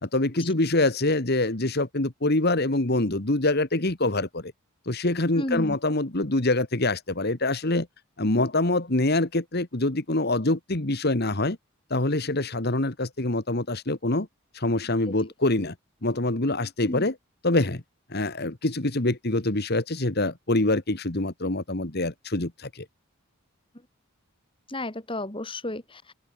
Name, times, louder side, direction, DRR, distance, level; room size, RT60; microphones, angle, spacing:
voice 1, 0.0-4.5 4.8-7.9 8.2-11.6 11.9-14.3 14.5-15.7 16.0-17.1 17.4-17.8 18.1-22.8, left 2 dB, 50° left, 1.8 m, -25 dB
voice 2, 5.3-5.8 16.8-17.0 24.7-26.1, left 1 dB, 25° left, 2.5 m, -32 dB
open air
head